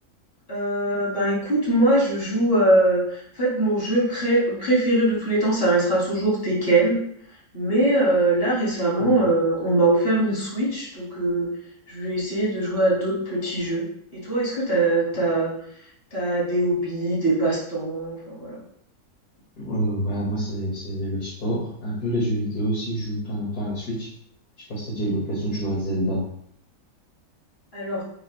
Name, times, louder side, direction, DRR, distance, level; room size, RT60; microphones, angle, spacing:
voice 1, 0.5-7.0 7.5-11.5 11.9-13.8 14.1-15.5 16.1-18.6 27.7-28.0, right 1 dB, 40° left, -5 dB, 3.1 m, -22 dB
voice 2, 19.6-24.1 24.7-26.2, equal, 80° left, -6 dB, 2.7 m, -27 dB
9.2 x 6.5 x 2.2 m, 0.69 s
omnidirectional pair, 1.6 m